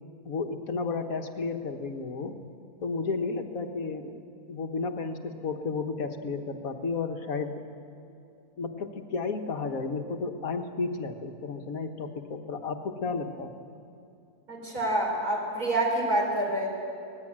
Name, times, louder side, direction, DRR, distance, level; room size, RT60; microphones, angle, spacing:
voice 1, 0.3-2.4 2.8-4.2 4.5-7.6 8.6-13.5, left 4 dB, 50° left, 5 dB, 1.8 m, -32 dB
voice 2, 14.5-16.7, right 1 dB, 45° right, -2 dB, 5.0 m, -27 dB
25.0 x 19.0 x 8.9 m, 2.5 s
omnidirectional pair, 2.1 m